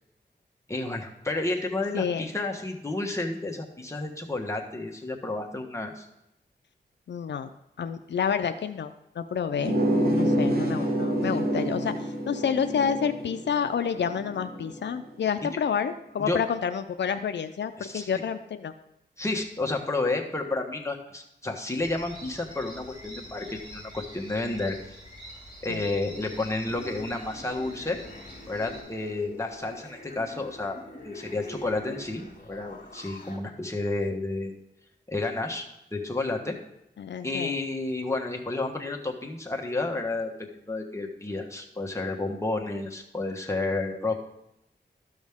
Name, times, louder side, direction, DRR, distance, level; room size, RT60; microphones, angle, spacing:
voice 1, 0.7-6.1 16.2-16.4 17.8-18.1 19.2-25.0 25.6-28.0 28.5-30.8 31.0-34.5 35.1-36.5 37.2-44.2, left 2 dB, 15° left, 1 dB, 1.3 m, -31 dB
voice 2, 1.9-2.2 7.1-7.5 7.8-8.9 9.2-9.8 10.2-11.9 12.3-18.7 25.7-25.9 37.0-37.5, left 7 dB, 80° left, 9 dB, 0.4 m, -29 dB
sound 1, 9.6-14.9, equal, 55° right, 1.3 m, -27 dB
sound 2, 21.8-28.8, equal, 25° right, 3.0 m, -46 dB
sound 3, 26.2-33.4, left 1 dB, 55° left, 1.9 m, -45 dB
12.5 x 6.3 x 3.6 m, 0.84 s
wide cardioid pair, 85°, 18 cm